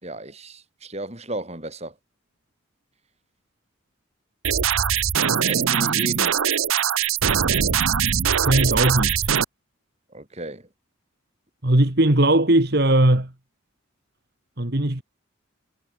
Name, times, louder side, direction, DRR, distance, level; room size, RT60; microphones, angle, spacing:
voice 1, 0.0-1.9 5.5-6.4 10.1-10.7, right 1 dB, 30° right, 5.3 m, -34 dB
sound 1, 4.4-9.4, right 8 dB, 90° right, 0.9 m, -21 dB
voice 2, 8.4-9.2 11.6-13.3 14.6-15.0, right 1 dB, 50° right, 2.1 m, -19 dB
head